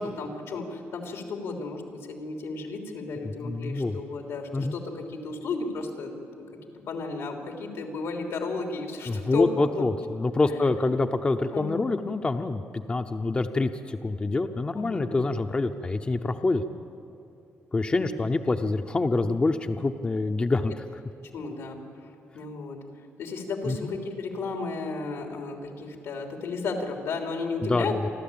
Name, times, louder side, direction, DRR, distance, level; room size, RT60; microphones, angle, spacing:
voice 1, 0.0-6.1 6.9-9.9 10.4-10.7 11.5-12.0 14.7-15.1 18.0-18.1 21.3-21.8 22.3-22.8 23.2-28.0, left 4 dB, 90° left, 2 dB, 3.3 m, -33 dB
voice 2, 3.2-4.0 4.5-4.8 9.1-12.6 12.9-16.6 17.7-20.9 23.7-23.8 27.6-28.1, left 3 dB, 20° left, 7 dB, 0.7 m, -26 dB
28.0 x 12.5 x 8.7 m, 2.9 s
cardioid pair, 140°, 5 cm